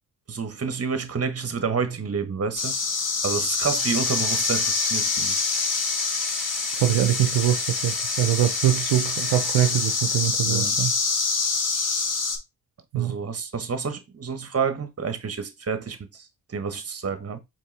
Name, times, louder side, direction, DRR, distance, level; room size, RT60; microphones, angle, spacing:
voice 1, 0.3-2.7 3.2-5.4 10.5-10.8 12.9-17.4, right 5 dB, 30° right, 1.0 m, -29 dB
sound 1, 2.6-12.4, left 4 dB, 40° left, 1.1 m, -26 dB
Engine / Drill, 3.8-10.3, equal, ahead, 2.6 m, -39 dB
voice 2, 6.7-10.9 12.9-13.2, right 13 dB, 70° right, 0.7 m, -23 dB
4.6 x 3.1 x 3.2 m
supercardioid pair, 40°, 47 cm